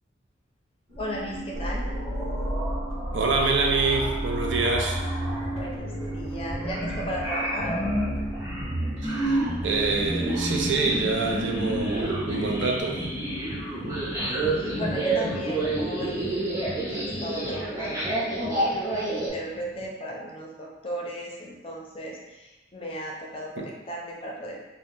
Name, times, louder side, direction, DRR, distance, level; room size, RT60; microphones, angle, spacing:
sound 1, 0.9-12.6, right 1 dB, 35° right, 1.4 m, -37 dB
voice 1, 1.0-1.9 5.6-7.9 14.5-16.5 16.9-24.6, equal, 30° left, -2 dB, 0.4 m, -36 dB
sound 2, 1.5-19.3, right 1 dB, 15° right, 1.0 m, -29 dB
voice 2, 3.1-5.0 9.0-13.0 23.6-23.7, right 4 dB, 80° right, 2 dB, 0.4 m, -26 dB
sound 3, 11.5-19.9, right 1 dB, 55° right, 1.2 m, -38 dB
2.7 x 2.1 x 3.5 m, 1.1 s
head